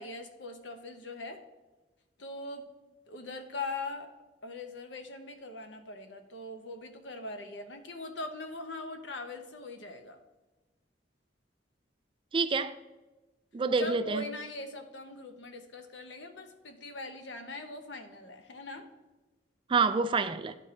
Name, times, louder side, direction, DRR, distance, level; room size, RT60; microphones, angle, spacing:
voice 1, 0.0-1.4 2.2-2.7 3.1-4.1 4.4-10.2 13.8-18.9, left 2 dB, 85° left, 0.9 m, -41 dB
voice 2, 12.3-12.7 13.5-14.3 19.7-20.6, right 4 dB, 30° right, 0.3 m, -27 dB
11.5 x 4.3 x 3.2 m
head